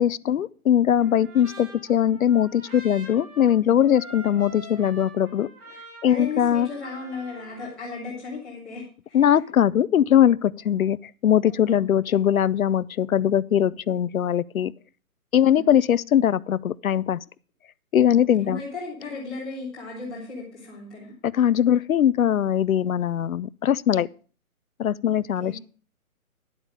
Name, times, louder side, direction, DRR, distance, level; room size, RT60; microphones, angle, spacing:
voice 1, 0.0-5.5 6.0-6.7 9.1-11.0 11.2-14.7 15.3-17.2 17.9-18.6 21.2-24.1 24.8-25.6, left 10 dB, 70° left, 0.5 m, -21 dB
Trumpet, 1.0-7.7, right 1 dB, 85° right, 6.6 m, -45 dB
voice 2, 6.1-9.3 11.4-11.9 15.4-15.7 18.1-21.1 25.4-25.6, left 3 dB, ahead, 0.9 m, -36 dB
11.0 x 8.1 x 4.8 m
hypercardioid pair, 175°, 44 cm